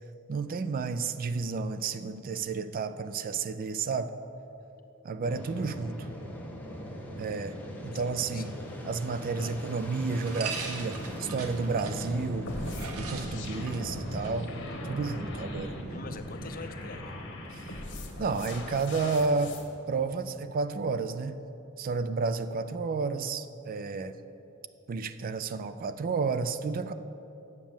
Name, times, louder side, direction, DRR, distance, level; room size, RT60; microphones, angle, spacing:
voice 1, 0.3-4.1 5.0-6.1 7.2-7.6 7.8-8.5 8.8-12.5 12.9-14.5 14.8-15.8 17.5-17.7 18.2-19.6 19.9-21.4 21.8-24.2 24.9-26.9, right 4 dB, 40° right, 11 dB, 0.4 m, -31 dB
Fixed-wing aircraft airplane, 5.2-20.4, equal, 10° left, 1.1 m, -40 dB
sound 1, 8.2-16.2, right 4 dB, 90° right, 1.1 m, -43 dB
voice 2, 8.3-9.6 15.9-17.2, left 4 dB, 40° left, 7 dB, 0.7 m, -45 dB
sound 2, 12.5-19.6, left 2 dB, 60° left, 1.2 m, -42 dB
8.2 x 7.3 x 7.2 m, 2.9 s
head